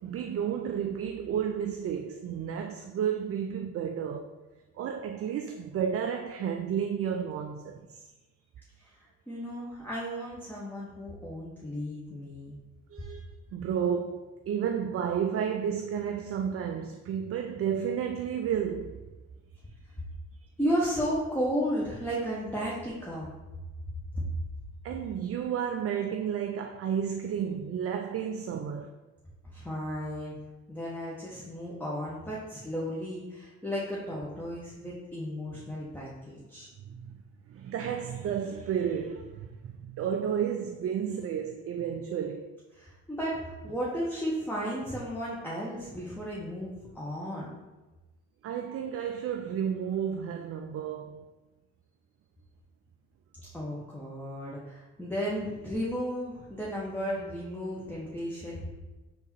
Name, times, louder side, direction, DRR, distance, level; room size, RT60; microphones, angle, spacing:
voice 1, 0.0-4.3 4.7-8.1 12.9-13.2 13.5-19.0 24.8-29.0 36.9-37.2 37.5-42.6 48.4-51.3, right 8 dB, 45° right, 0.4 m, -32 dB
voice 2, 8.8-12.5 20.6-23.3 24.1-24.2 29.5-30.3 30.7-36.7 42.8-47.5 53.5-58.7, equal, 5° left, 1.0 m, -34 dB
3.5 x 2.9 x 4.4 m
hypercardioid pair, 45°, 34 cm